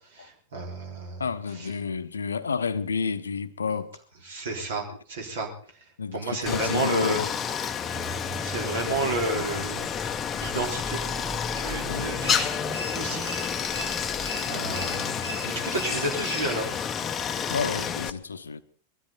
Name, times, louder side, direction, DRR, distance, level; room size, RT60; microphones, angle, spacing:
voice 1, 0.1-1.2 1.6-1.7 4.2-5.5 6.1-7.2 8.4-9.9 10.3-11.0 11.5-12.6 12.9-13.3 14.5-16.7, right 2 dB, 60° right, 4.0 m, -31 dB
voice 2, 1.2-3.9 6.0-7.3 9.2-9.3 11.8-12.2 17.5-18.6, left 5 dB, 75° left, 0.8 m, -30 dB
Stream, 6.5-18.1, left 7 dB, 25° left, 0.8 m, -30 dB
sound 1, 7.8-15.1, right 1 dB, ahead, 1.7 m, -40 dB
sound 2, 12.2-16.8, equal, 85° right, 3.5 m, -39 dB
22.0 x 13.5 x 4.1 m
figure-of-eight pair, 90°, 0 cm